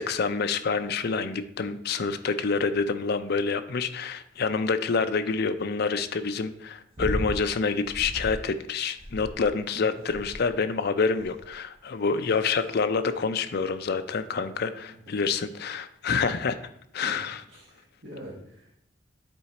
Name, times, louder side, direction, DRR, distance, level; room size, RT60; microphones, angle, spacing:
voice 1, 0.0-16.6 16.9-17.4, left 4 dB, 55° left, 9 dB, 0.5 m, -27 dB
sound 1, 6.9-7.4 7.8-8.4 9.0-9.6 10.1-10.5 11.2-11.5 12.2-12.6 13.5-13.6, equal, 30° right, 1.4 m, -35 dB
voice 2, 17.5-18.8, equal, 60° right, -6 dB, 1.6 m, -44 dB
9.0 x 3.8 x 4.2 m, 0.76 s
head